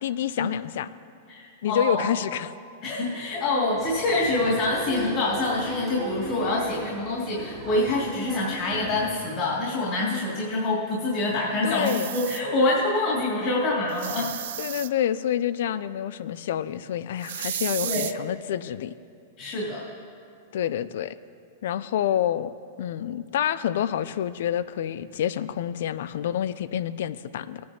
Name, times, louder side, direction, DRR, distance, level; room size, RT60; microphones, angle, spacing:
voice 1, 0.0-0.9 1.6-2.5 10.0-10.2 11.6-12.1 14.6-18.9 20.5-21.1 21.6-22.5 22.8-27.6, left 10 dB, 70° left, 16 dB, 0.4 m, -28 dB
voice 2, 1.3-2.1 2.8-14.4 17.8-18.1 19.4-19.9, left 2 dB, 45° left, -6 dB, 2.6 m, -26 dB
Applause, 3.8-9.1, right 2 dB, 20° right, 1.2 m, -38 dB
sound 1, 11.7-12.4 13.9-14.9 17.2-18.1, right 12 dB, 70° right, 0.3 m, -33 dB
19.0 x 9.3 x 2.8 m, 2.4 s
supercardioid pair, 145°, 0 cm